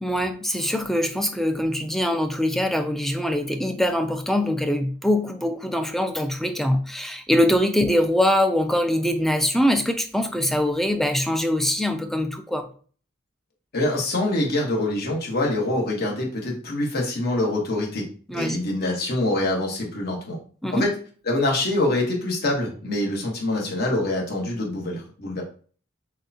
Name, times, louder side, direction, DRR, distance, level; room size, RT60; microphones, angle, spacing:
voice 1, 0.0-12.7 18.3-18.6 20.6-20.9, left 1 dB, ahead, 0.3 m, -23 dB
voice 2, 13.7-18.1 18.3-20.4 20.7-20.9 21.3-25.4, left 1 dB, 50° left, 1.1 m, -25 dB
6.3 x 2.1 x 2.7 m
head